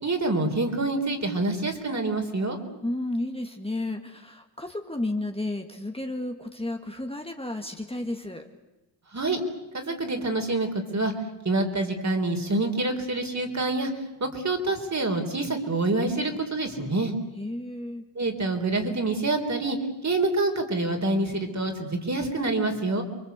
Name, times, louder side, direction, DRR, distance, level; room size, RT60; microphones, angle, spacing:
voice 1, 0.0-2.6 9.1-9.4 9.7-11.1 11.4-17.1 18.2-19.8 20.0-23.0, right 2 dB, 35° right, 4 dB, 4.0 m, -26 dB
voice 2, 2.8-8.5 17.4-18.1, left 1 dB, 10° left, 3 dB, 1.9 m, -32 dB
29.0 x 23.0 x 8.2 m, 1.0 s
cardioid pair, 90°, 45 cm